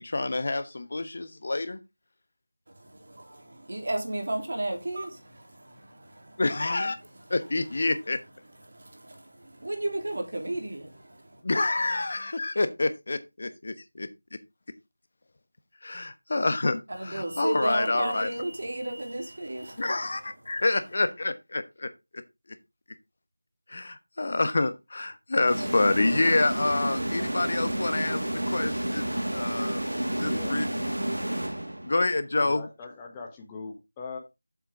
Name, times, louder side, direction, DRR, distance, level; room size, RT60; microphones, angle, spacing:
voice 1, 0.0-1.8 6.4-7.0 7.3-8.2 11.4-14.1 15.8-18.4 19.8-21.9 22.5-22.6 23.7-29.1 29.3-29.8 30.1-30.7 31.8-32.7, left 2 dB, 45° left, 1.1 m, -27 dB
voice 2, 2.7-6.4 8.7-11.4 16.9-20.2 20.5-20.6, right 1 dB, 55° right, 3.3 m, -34 dB
sound 1, 25.5-32.1, right 1 dB, 90° right, 1.7 m, -30 dB
voice 3, 30.2-30.6 32.4-34.2, left 4 dB, 10° left, 1.3 m, -41 dB
8.5 x 7.5 x 3.6 m
figure-of-eight pair, 170°, 0 cm